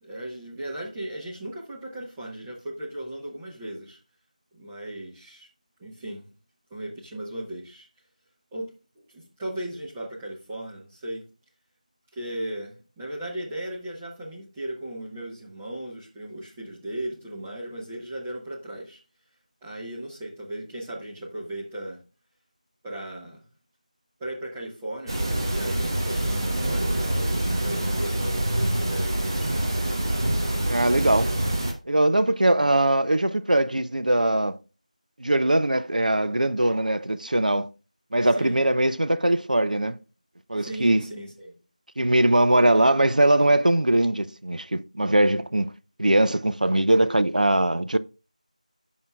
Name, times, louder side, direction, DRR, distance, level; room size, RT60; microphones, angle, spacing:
voice 1, 0.0-4.0 4.5-5.5 5.8-6.3 6.7-7.9 8.5-11.2 12.1-19.0 19.6-22.0 22.8-23.5 24.2-29.6 38.4-38.6 40.6-41.5, right 1 dB, 5° right, 0.7 m, -36 dB
sound 1, 25.1-31.7, right 1 dB, 35° right, 1.0 m, -26 dB
voice 2, 30.6-31.4 31.9-34.6 35.2-37.7 38.1-40.0 40.5-41.0 42.0-45.7 46.0-48.0, right 1 dB, 80° right, 0.5 m, -21 dB
10.5 x 5.6 x 2.3 m
figure-of-eight pair, 170°, 4 cm